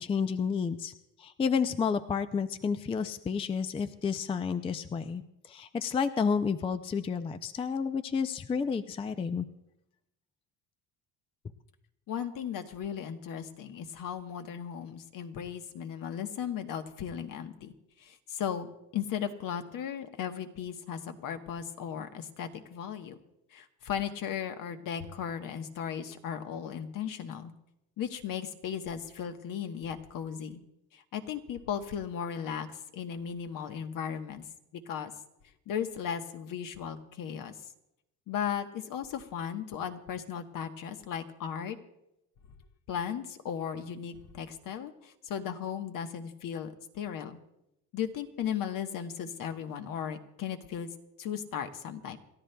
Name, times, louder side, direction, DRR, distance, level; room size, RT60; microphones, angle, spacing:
voice 1, 0.0-9.5, left 6 dB, 15° left, 11 dB, 0.4 m, -31 dB
voice 2, 12.1-17.7 18.0-23.2 23.5-27.5 28.0-30.6 30.9-34.4 34.7-35.1 35.7-37.5 38.3-41.8 42.9-47.4 47.9-50.9 51.2-52.2, left 8 dB, 60° left, 7 dB, 1.2 m, -36 dB
28.5 x 13.0 x 2.2 m, 0.86 s
cardioid pair, 115°, 38 cm